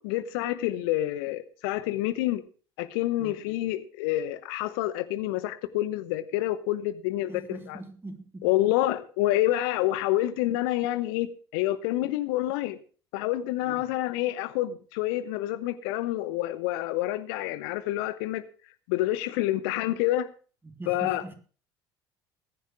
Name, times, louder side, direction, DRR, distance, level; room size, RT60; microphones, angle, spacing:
voice 1, 0.0-2.4 2.8-7.8 8.4-11.3 11.5-12.8 13.1-18.4 18.9-20.3 20.9-21.2, left 15 dB, 65° left, 0.9 m, -28 dB
voice 2, 7.3-8.5 13.6-13.9 20.6-21.3, right 2 dB, 15° right, 3.1 m, -42 dB
20.0 x 10.0 x 3.4 m
figure-of-eight pair, 60°, 13 cm